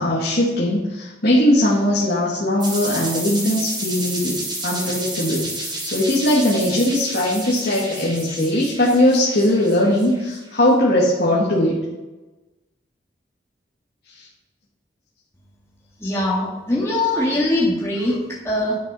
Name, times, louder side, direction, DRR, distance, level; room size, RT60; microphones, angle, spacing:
voice 1, 0.0-11.8, left 1 dB, 55° left, -6 dB, 2.0 m, -19 dB
sound 1, 2.6-10.4, right 1 dB, 25° right, 2.9 m, -31 dB
voice 2, 16.0-18.8, left 1 dB, 15° left, -6 dB, 1.9 m, -22 dB
12.0 x 6.5 x 5.5 m, 1.1 s
head